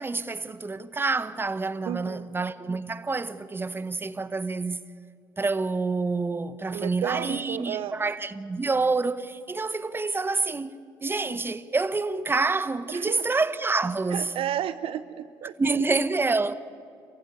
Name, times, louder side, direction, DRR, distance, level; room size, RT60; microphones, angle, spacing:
voice 1, 0.0-4.9 5.4-10.8 11.0-14.3 15.6-16.5, right 3 dB, 20° right, 1.1 m, -27 dB
voice 2, 1.9-2.3 6.7-7.9 12.9-13.2 14.1-15.5, right 11 dB, 60° right, 0.7 m, -32 dB
26.5 x 15.5 x 8.4 m
hypercardioid pair, 60°, 11 cm